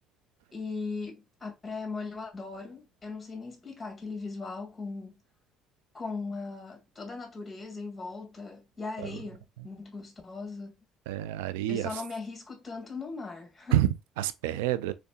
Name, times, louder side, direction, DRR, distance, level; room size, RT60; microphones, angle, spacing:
voice 1, 0.5-5.1 5.9-10.7 11.7-13.8, left 4 dB, 20° left, 1.9 m, -38 dB
voice 2, 11.1-12.0 13.7-14.9, right 13 dB, 90° right, 0.4 m, -28 dB
4.0 x 3.3 x 2.3 m
supercardioid pair, 70°, 0 cm